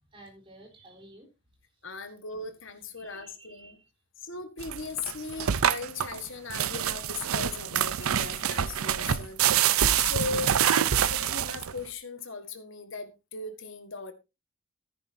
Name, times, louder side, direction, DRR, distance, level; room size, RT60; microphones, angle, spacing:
voice 1, 0.1-1.3 1.7-2.1 3.0-3.9 5.2-5.3, right 2 dB, 25° right, 4.2 m, -53 dB
voice 2, 1.8-3.8 4.2-9.7 10.0-10.6 11.1-14.1, left 4 dB, 60° left, 1.6 m, -38 dB
sound 1, 4.6-11.9, right 9 dB, 85° right, 0.6 m, -26 dB
13.5 x 10.5 x 2.8 m
head